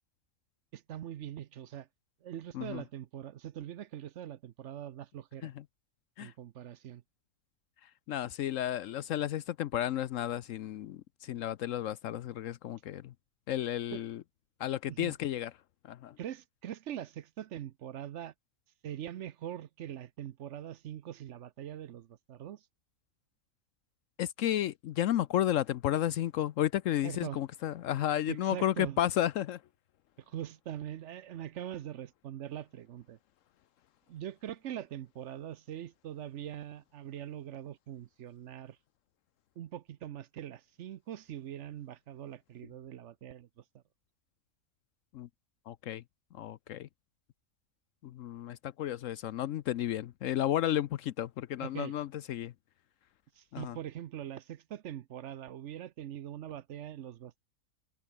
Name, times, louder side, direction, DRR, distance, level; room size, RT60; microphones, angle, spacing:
voice 1, 0.7-1.9 2.2-5.5 6.2-7.0 13.9-14.0 14.9-15.1 16.2-18.3 18.8-22.7 27.0-27.4 28.3-29.0 30.3-33.2 34.1-38.8 39.6-43.8 51.6-52.0 53.3-57.4, right 11 dB, 65° right, 0.9 m, -42 dB
voice 2, 8.1-13.1 13.5-14.2 14.6-15.5 15.9-16.1 24.2-29.6 45.1-45.3 45.7-46.0 46.3-46.9 48.0-52.5 53.5-53.7, left 12 dB, 75° left, 1.0 m, -32 dB
omnidirectional pair, 1.4 m